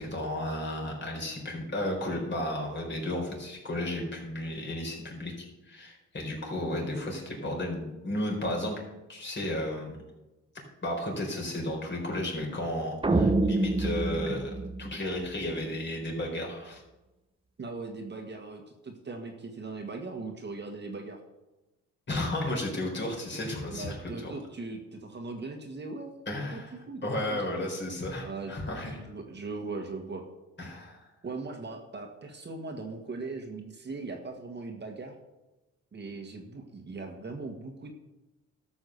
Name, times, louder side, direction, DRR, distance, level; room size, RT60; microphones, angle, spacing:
voice 1, 0.0-8.8 9.1-10.0 10.8-14.5 14.8-16.8 22.1-24.3 26.3-26.7 27.0-29.0 30.6-31.0, left 1 dB, 35° left, 0 dB, 4.5 m, -33 dB
sound 1, 13.0-15.5, right 2 dB, 15° right, 0.9 m, -27 dB
voice 2, 17.6-21.2 23.7-26.2 26.4-27.6 28.2-28.5 29.0-30.2 31.2-35.1 35.9-37.9, right 3 dB, 35° right, 3 dB, 1.7 m, -39 dB
13.0 x 6.2 x 6.7 m, 1.0 s
cardioid pair, 90°, 30 cm